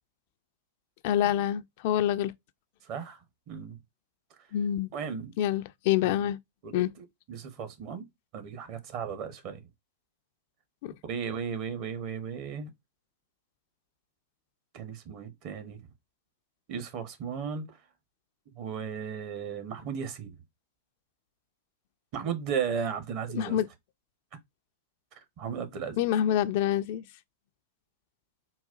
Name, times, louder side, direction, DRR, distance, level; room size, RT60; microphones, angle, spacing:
voice 1, 1.0-2.3 4.5-4.9 5.4-6.4 6.7-6.9 10.8-10.9 23.3-23.7 26.0-27.0, left 11 dB, 55° left, 0.3 m, -26 dB
voice 2, 2.8-3.8 4.9-5.3 6.0-6.3 6.6-8.0 8.3-9.7 11.0-12.7 14.7-15.8 16.7-17.8 18.5-20.4 22.1-23.6 25.4-26.0, right 7 dB, 45° right, 0.9 m, -35 dB
3.9 x 2.3 x 2.4 m
hypercardioid pair, 100°, 0 cm